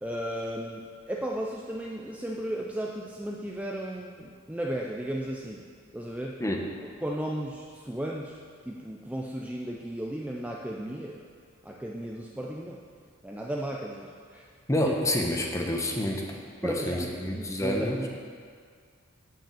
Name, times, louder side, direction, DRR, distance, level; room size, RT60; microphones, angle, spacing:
voice 1, 0.0-5.6 5.9-6.4 7.0-11.2 11.6-12.8 13.2-14.4 14.8-14.9 16.6-18.2, right 1 dB, 5° right, -1 dB, 0.4 m, -35 dB
voice 2, 14.7-18.0, left 1 dB, 15° left, 1 dB, 0.9 m, -28 dB
9.1 x 5.2 x 6.9 m, 2.1 s
head